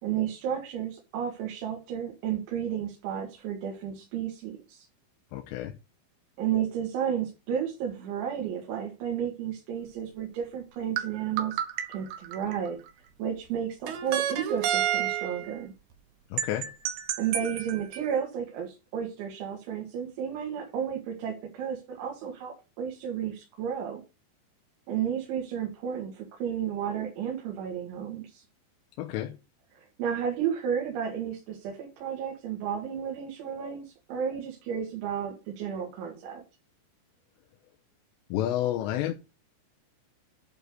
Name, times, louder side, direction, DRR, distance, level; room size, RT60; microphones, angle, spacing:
voice 1, 0.0-4.9 6.4-11.6 11.9-15.7 17.2-24.0 24.9-28.4 29.8-36.4, right 8 dB, 85° right, 4.4 m, -32 dB
voice 2, 5.3-5.8 16.3-16.7 29.0-29.4 38.3-39.1, left 12 dB, 80° left, 2.9 m, -30 dB
sound 1, 11.0-12.9 13.9-15.5 16.4-18.1, right 10 dB, 70° right, 2.9 m, -30 dB
11.5 x 3.9 x 6.5 m
omnidirectional pair, 5.3 m